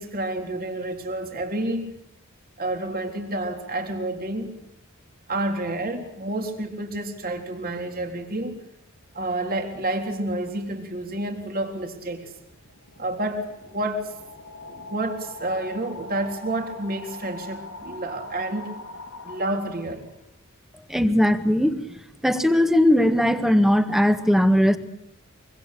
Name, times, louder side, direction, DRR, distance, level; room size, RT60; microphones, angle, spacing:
voice 1, 0.0-1.9 2.6-4.5 5.3-8.6 9.1-12.3 13.0-14.1 14.7-18.7 19.2-20.1, right 1 dB, 45° right, 4 dB, 3.8 m, -29 dB
sound 1, 12.4-20.1, left 2 dB, 85° left, 3.3 m, -42 dB
voice 2, 20.9-21.8 22.2-24.8, left 1 dB, ahead, 9 dB, 1.7 m, -19 dB
24.5 x 24.5 x 8.5 m, 0.75 s
head